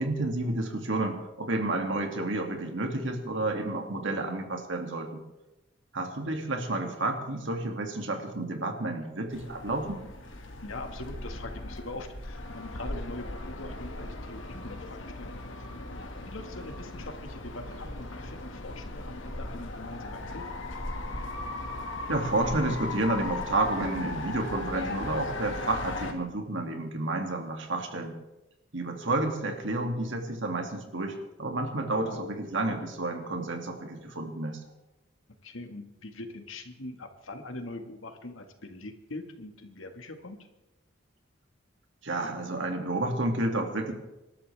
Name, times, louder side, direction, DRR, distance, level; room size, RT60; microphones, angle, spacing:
voice 1, 0.0-5.2 5.9-10.0 22.1-28.1 28.7-34.6 42.0-43.9, right 2 dB, 70° right, 3 dB, 2.5 m, -30 dB
sound 1, 9.3-26.1, left 2 dB, 70° left, 2.0 m, -38 dB
voice 2, 10.6-20.6 31.9-32.2 35.4-40.4, left 2 dB, 90° left, 6 dB, 1.9 m, -43 dB
26.5 x 12.5 x 3.5 m, 0.98 s
head